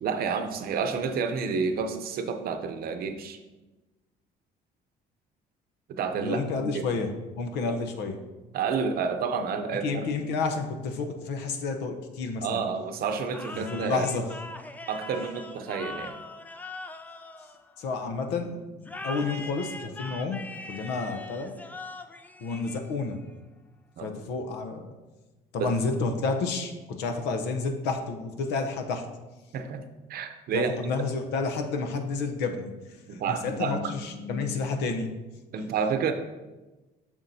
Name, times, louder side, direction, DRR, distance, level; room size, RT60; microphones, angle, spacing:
voice 1, 0.0-3.4 5.9-6.4 6.7-6.8 8.5-10.1 12.4-14.1 14.9-16.1 24.0-24.1 25.6-25.7 29.5-29.8 30.1-30.9 33.1-34.4 35.5-36.1, right 5 dB, 65° right, 7 dB, 0.7 m, -30 dB
voice 2, 6.2-8.2 9.8-12.6 13.5-14.3 17.8-20.4 20.7-21.5 22.4-23.2 24.0-24.9 25.5-29.0 30.5-32.7 33.1-35.1, left 4 dB, 85° left, 5 dB, 0.8 m, -30 dB
sound 1, 13.3-18.1 18.8-23.2, left 2 dB, 10° left, 0.3 m, -41 dB
7.2 x 6.3 x 2.7 m, 1.1 s
cardioid pair, 110°, 17 cm